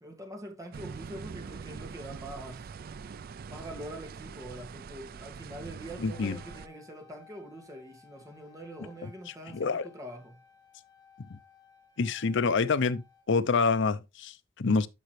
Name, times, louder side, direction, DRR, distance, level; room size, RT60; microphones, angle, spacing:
voice 1, 0.0-2.7 3.5-10.4, right 1 dB, 15° right, 2.1 m, -44 dB
sound 1, 0.7-6.7, right 5 dB, 50° right, 0.4 m, -43 dB
voice 2, 6.0-6.4 9.0-9.1 9.5-9.9 12.0-13.0 13.3-14.9, left 4 dB, 65° left, 0.6 m, -27 dB
sound 2, 6.1-13.2, left 6 dB, 20° left, 2.6 m, -59 dB
10.5 x 5.8 x 3.2 m
head